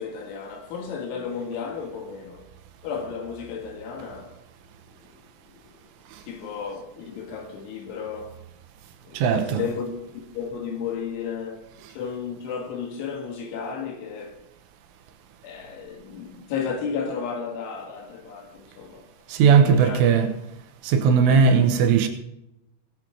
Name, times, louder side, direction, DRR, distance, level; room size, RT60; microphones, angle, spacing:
voice 1, 0.0-2.5 2.8-4.4 4.8-5.1 5.5-5.9 6.2-8.4 9.1-9.9 10.3-14.4 15.4-19.1 19.6-20.0 21.3-21.7, left 6 dB, 70° left, 4.0 m, -33 dB
voice 2, 9.1-9.6 19.3-20.3 20.8-22.1, right 6 dB, 80° right, 3.4 m, -18 dB
19.0 x 8.1 x 4.6 m
omnidirectional pair, 5.9 m